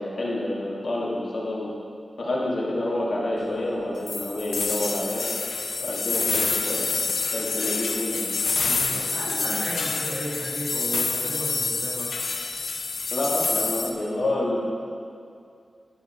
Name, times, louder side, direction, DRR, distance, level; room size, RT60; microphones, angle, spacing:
voice 1, 0.0-1.7 2.2-5.3 5.8-6.9 7.3-8.3 13.1-14.6, left 1 dB, 65° left, -5 dB, 2.6 m, -28 dB
sound 1, 4.1-13.9, left 4 dB, 80° left, 0.8 m, -27 dB
voice 2, 8.6-12.1, right 1 dB, 80° right, -5 dB, 3.1 m, -34 dB
11.0 x 9.9 x 4.7 m, 2.3 s
wide cardioid pair, 125°, 0 cm